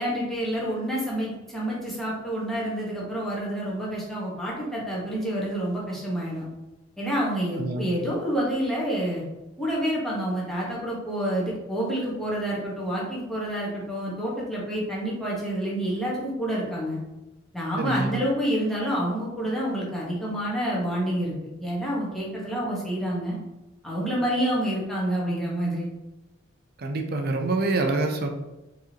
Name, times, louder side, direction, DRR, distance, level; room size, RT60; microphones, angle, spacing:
voice 1, 0.0-6.4 7.0-9.2 9.6-17.0 17.5-21.3 21.6-23.4 23.8-25.9, equal, ahead, -6 dB, 1.1 m, -28 dB
voice 2, 17.8-18.1 26.8-28.3, right 2 dB, 50° right, 4 dB, 0.5 m, -26 dB
4.6 x 3.1 x 2.8 m, 1.0 s
head